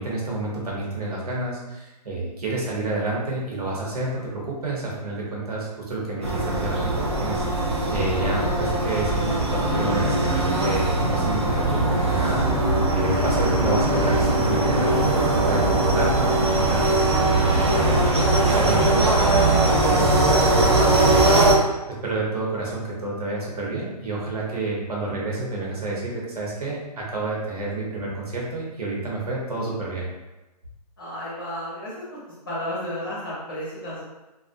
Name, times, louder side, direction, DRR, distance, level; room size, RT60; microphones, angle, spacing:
voice 1, 0.0-21.4 22.0-30.1, right 2 dB, 65° right, -4 dB, 0.9 m, -29 dB
sound 1, 6.2-21.5, right 2 dB, 40° right, 0.4 m, -20 dB
voice 2, 31.0-32.2 32.5-34.0, equal, 35° left, -7 dB, 0.7 m, -32 dB
2.4 x 2.1 x 2.5 m, 1.1 s
hypercardioid pair, 175°, 21 cm